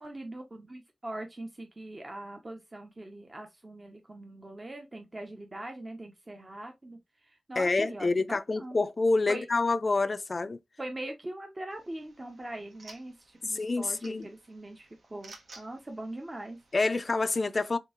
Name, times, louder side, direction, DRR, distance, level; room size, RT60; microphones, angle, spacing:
voice 1, 0.0-8.8 9.3-9.5 10.8-16.6, right 1 dB, 25° right, 0.6 m, -42 dB
voice 2, 7.6-10.6 13.5-14.3 16.7-17.8, left 3 dB, 40° left, 0.4 m, -27 dB
sound 1, 11.7-17.1, right 3 dB, 75° right, 1.0 m, -55 dB
3.6 x 3.5 x 2.9 m
wide cardioid pair, 115°, 0 cm